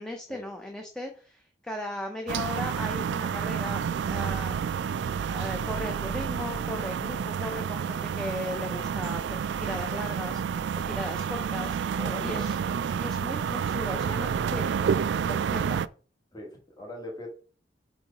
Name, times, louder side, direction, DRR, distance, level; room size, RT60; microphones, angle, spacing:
voice 1, 0.0-3.8 4.1-4.6 5.3-11.8 12.2-12.6 13.0-14.8 15.3-15.8, left 1 dB, 5° left, 3 dB, 0.7 m, -37 dB
sound 1, 2.3-15.9, right 7 dB, 70° right, 0.3 m, -29 dB
voice 2, 12.0-12.4 16.3-17.3, left 1 dB, 20° left, 0 dB, 1.3 m, -39 dB
4.8 x 4.5 x 5.0 m, 0.40 s
head